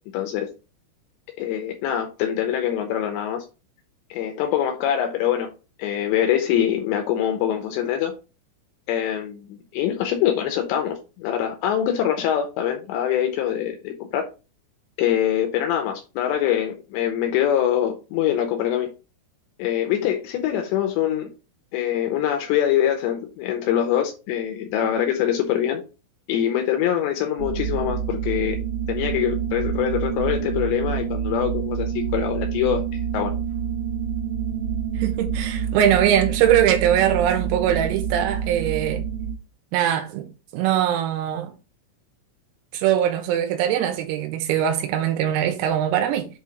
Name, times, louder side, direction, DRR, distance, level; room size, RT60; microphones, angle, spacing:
voice 1, 0.1-0.5 1.4-3.4 4.1-5.5 5.8-8.1 8.9-14.2 15.0-18.9 19.6-21.3 21.7-25.8 26.3-28.6 28.9-32.8 33.1-33.3, left 10 dB, 85° left, 2.5 m, -24 dB
sound 1, 27.4-39.3, right 8 dB, 60° right, 2.9 m, -27 dB
voice 2, 35.0-39.0 39.7-40.3 40.5-41.5 42.7-46.3, right 10 dB, 85° right, 3.7 m, -21 dB
8.0 x 2.8 x 5.1 m
omnidirectional pair, 6.0 m